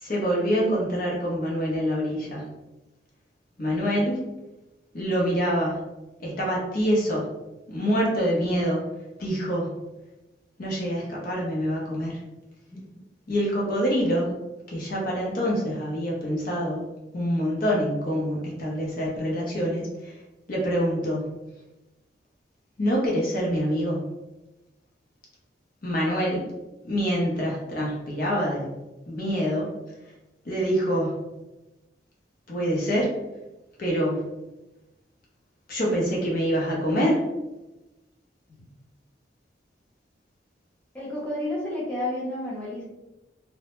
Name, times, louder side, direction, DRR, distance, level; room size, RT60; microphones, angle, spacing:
voice 1, 0.0-2.5 3.6-4.2 4.9-5.9 6.2-7.3 7.7-8.8 9.2-9.7 10.6-12.2 13.3-14.3 14.7-16.9 17.1-19.9 20.5-21.4 22.8-24.0 25.8-26.4 26.9-28.7 29.1-29.7 30.5-31.2 32.5-33.1 33.8-34.3 35.7-37.2, equal, 55° left, -4 dB, 0.6 m, -25 dB
voice 2, 40.9-42.8, left 1 dB, 5° left, -7 dB, 0.6 m, -31 dB
2.1 x 2.0 x 2.9 m, 1.0 s
head